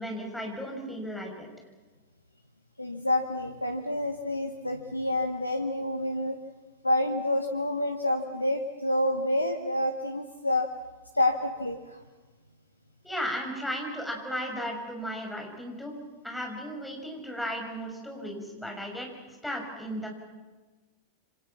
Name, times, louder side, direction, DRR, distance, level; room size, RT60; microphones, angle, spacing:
voice 1, 0.0-1.5 13.0-15.9 16.2-20.1, equal, 5° left, 1 dB, 6.7 m, -35 dB
voice 2, 2.8-6.4 6.8-10.7 11.1-12.0, left 1 dB, 85° left, 6 dB, 1.3 m, -28 dB
28.5 x 26.0 x 6.0 m, 1.3 s
figure-of-eight pair, 90°, 0 cm